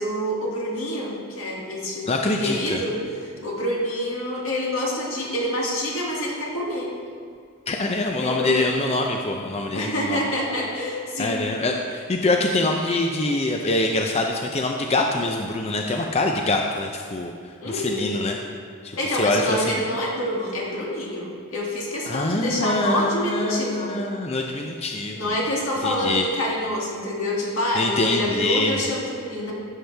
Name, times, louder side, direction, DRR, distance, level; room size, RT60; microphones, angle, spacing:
voice 1, 0.0-2.1 2.4-3.0 3.4-6.9 8.2-8.7 9.7-11.4 17.6-18.1 18.9-23.9 25.1-29.5, equal, 80° left, -3 dB, 2.3 m, -27 dB
voice 2, 2.1-2.8 7.7-10.2 11.2-17.3 17.6-18.4 18.8-19.8 22.1-25.3 25.8-26.2 27.7-28.8, left 2 dB, 30° left, 2 dB, 0.5 m, -24 dB
14.5 x 7.5 x 3.4 m, 2.1 s
head